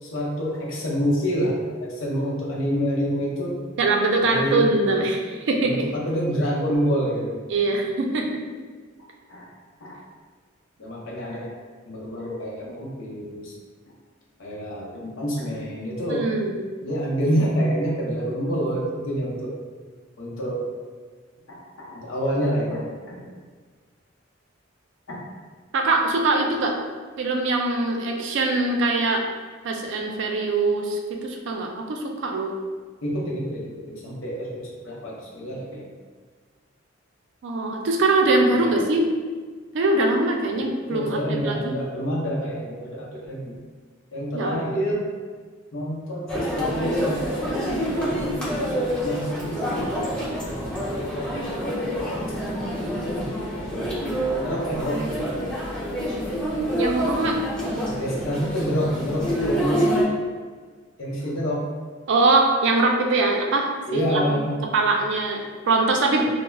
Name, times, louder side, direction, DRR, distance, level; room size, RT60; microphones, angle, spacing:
voice 1, 0.0-3.6 4.2-4.7 5.6-7.4 9.3-9.5 9.8-10.0 10.8-11.5 11.9-13.5 14.4-16.3 16.8-19.5 20.2-20.6 21.5-23.3 25.1-25.2 33.0-35.8 38.5-38.8 40.4-43.6 44.1-45.0 45.7-47.2 47.5-48.3 49.0-49.9 53.1-54.1 54.4-55.2 57.1-57.3 57.8-59.8 61.0-61.7 63.9-64.6 66.0-66.2, equal, 70° left, -3 dB, 0.6 m, -27 dB
voice 2, 3.8-5.7 7.5-8.2 16.1-16.5 25.7-26.7 27.2-29.2 29.6-32.5 37.4-39.1 39.7-41.8 44.3-44.5 56.8-57.4 62.1-64.4 64.7-66.2, right 2 dB, 60° right, 2 dB, 0.4 m, -22 dB
sound 1, 46.3-60.0, equal, 5° left, 0.5 m, -27 dB
2.3 x 2.0 x 3.1 m, 1.5 s
head